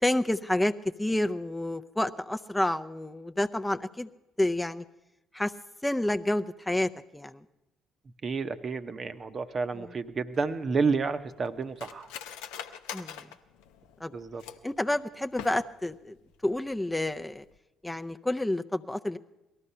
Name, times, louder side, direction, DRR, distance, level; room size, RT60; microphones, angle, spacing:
voice 1, 0.0-4.1 4.4-4.8 5.3-5.5 5.8-7.4 9.7-9.9 12.9-13.3 14.0-14.1 14.6-16.1 16.4-17.4 17.8-19.2, left 1 dB, 10° left, 10 dB, 0.5 m, -29 dB
voice 2, 8.2-12.1 14.1-14.4, right 4 dB, 45° right, 10 dB, 0.8 m, -30 dB
Cutlery silverware, 10.3-14.8 15.3-16.0 16.3-16.4 16.7-17.1 17.4-17.6, left 9 dB, 80° left, 0.6 m, -44 dB
18.5 x 13.0 x 5.5 m, 0.97 s
hypercardioid pair, 55°, 0 cm